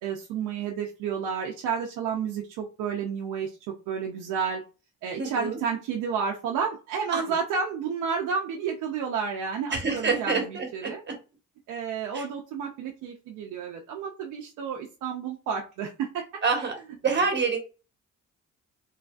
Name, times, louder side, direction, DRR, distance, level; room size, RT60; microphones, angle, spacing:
voice 1, 0.0-3.5 3.9-4.6 5.0-11.0 11.7-16.2 16.6-16.7, right 6 dB, 90° right, 1 dB, 0.5 m, -31 dB
voice 2, 5.2-5.6 7.1-7.2 9.7-11.1 12.1-12.2 16.4-16.8 17.0-17.6, right 4 dB, 35° right, 3 dB, 1.0 m, -27 dB
3.2 x 2.4 x 2.2 m, 0.32 s
cardioid pair, 90°, 30 cm